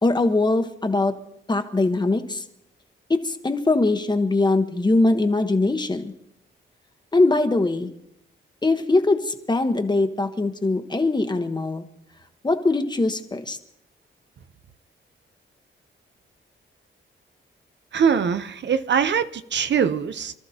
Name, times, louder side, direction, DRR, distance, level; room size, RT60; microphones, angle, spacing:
voice 1, 0.0-1.1 1.5-2.4 3.1-6.1 7.1-7.9 8.6-11.9 12.4-13.6, left 2 dB, 20° left, 1.1 m, -21 dB
voice 2, 17.9-20.3, right 7 dB, 60° right, 0.7 m, -22 dB
28.0 x 13.5 x 2.9 m
wide cardioid pair, 130°, 20 cm